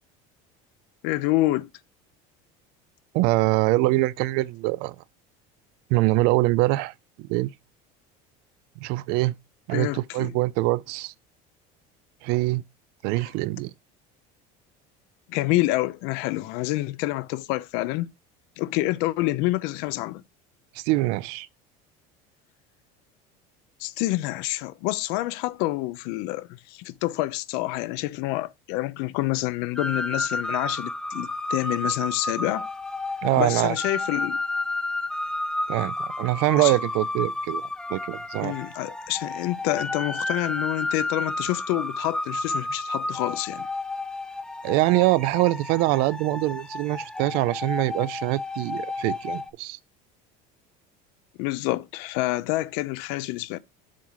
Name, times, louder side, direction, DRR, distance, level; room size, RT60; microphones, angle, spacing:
voice 1, 1.0-1.7 9.7-10.3 15.3-18.1 18.6-20.2 23.8-32.7 33.4-34.4 36.6-36.8 38.4-43.7 51.4-53.6, left 18 dB, 65° left, 0.6 m, -27 dB
voice 2, 3.1-5.0 5.9-7.5 8.8-9.3 9.7-11.1 12.2-12.6 13.0-13.7 20.8-21.5 33.2-33.8 35.7-38.5 44.6-49.8, right 19 dB, 60° right, 0.5 m, -24 dB
sound 1, 29.8-49.5, left 2 dB, 5° left, 0.4 m, -31 dB
7.5 x 3.6 x 5.6 m
cardioid pair, 160°, 18 cm